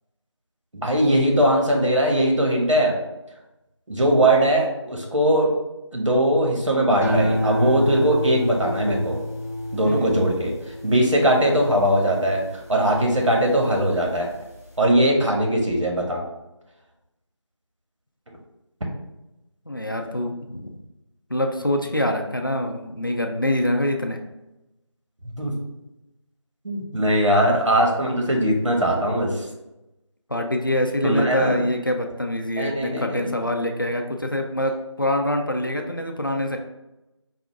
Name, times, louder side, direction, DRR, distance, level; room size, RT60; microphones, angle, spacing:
voice 1, 0.7-3.0 3.9-5.5 5.9-9.2 9.7-10.5 10.8-14.3 14.8-16.2 25.2-25.5 26.6-29.5 31.0-31.7 32.6-33.3, right 1 dB, 85° right, 0 dB, 1.3 m, -20 dB
sound 1, 7.0-13.5 14.0-14.5, left 1 dB, 30° right, 0.6 m, -28 dB
voice 2, 19.7-20.8 21.3-24.2 30.3-36.6, left 1 dB, 45° left, 4 dB, 0.5 m, -25 dB
4.9 x 2.4 x 3.5 m, 0.96 s
figure-of-eight pair, 180°, 16 cm